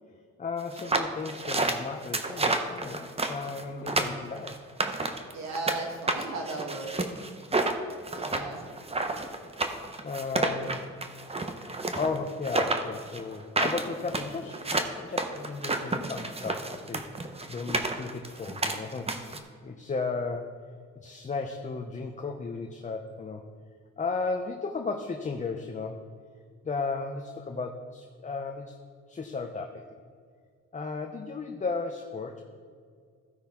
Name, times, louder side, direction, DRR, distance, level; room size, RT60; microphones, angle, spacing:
voice 1, 0.4-4.6 10.0-10.8 12.0-17.0 17.5-19.1 19.6-20.6 21.0-23.4 24.0-26.1 26.6-28.7 29.1-29.9 30.7-32.4, left 4 dB, 25° left, 3 dB, 0.7 m, -34 dB
sound 1, 0.7-5.8 6.1-19.4, right 2 dB, 20° right, 0.8 m, -30 dB
voice 2, 5.3-7.1 8.1-8.7, right 3 dB, 60° right, 1 dB, 2.0 m, -36 dB
15.0 x 5.6 x 3.6 m, 2.1 s
cardioid pair, 90°, 30 cm